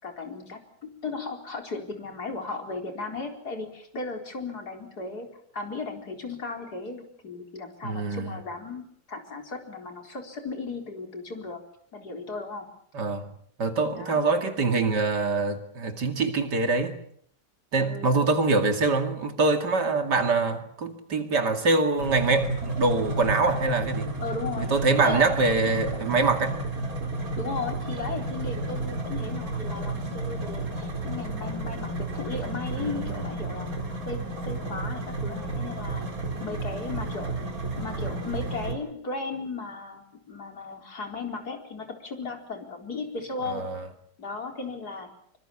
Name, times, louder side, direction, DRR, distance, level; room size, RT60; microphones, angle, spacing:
voice 1, 0.0-5.3 5.5-11.6 11.9-12.7 14.0-14.2 17.8-18.1 24.2-24.7 25.0-25.2 27.3-33.7 34.1-36.0 36.4-37.4 37.8-40.0 40.3-43.6 44.2-45.1, left 3 dB, 65° left, 4.8 m, -36 dB
voice 2, 7.8-8.4 12.9-13.3 13.6-17.0 17.7-24.1 24.6-26.6 32.8-33.2 34.6-34.8 43.4-43.9, right 3 dB, 75° right, 3.0 m, -24 dB
sound 1, 22.0-38.7, right 2 dB, 55° right, 4.3 m, -32 dB
25.5 x 24.5 x 7.2 m
omnidirectional pair, 1.8 m